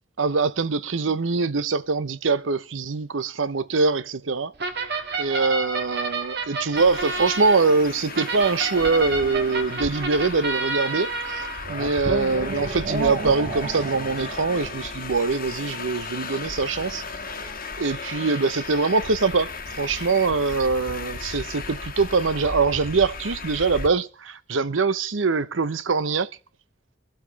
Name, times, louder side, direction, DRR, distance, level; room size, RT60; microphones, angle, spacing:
voice 1, 0.2-4.5 5.2-17.0 17.8-26.3, right 4 dB, 85° right, 0.8 m, -23 dB
sound 1, 4.6-14.9, right 3 dB, 60° right, 1.6 m, -30 dB
Traffic noise roadway noise, 6.8-23.9, left 4 dB, 50° left, 1.3 m, -36 dB
22.5 x 7.7 x 4.1 m
head